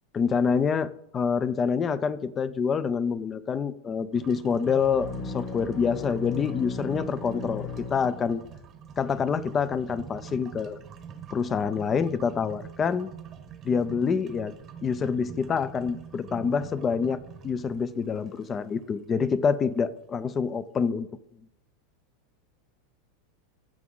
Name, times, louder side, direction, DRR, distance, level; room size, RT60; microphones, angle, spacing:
voice 1, 0.1-8.4 9.0-10.8 11.3-13.1 13.6-14.5 14.8-21.1, left 6 dB, 20° left, 16 dB, 0.5 m, -27 dB
sound 1, 4.1-20.0, right 7 dB, 25° right, 0.9 m, -45 dB
sound 2, 4.8-8.6, left 5 dB, 50° left, 2.2 m, -37 dB
15.5 x 6.1 x 3.8 m, 0.85 s
supercardioid pair, 155°, 0 cm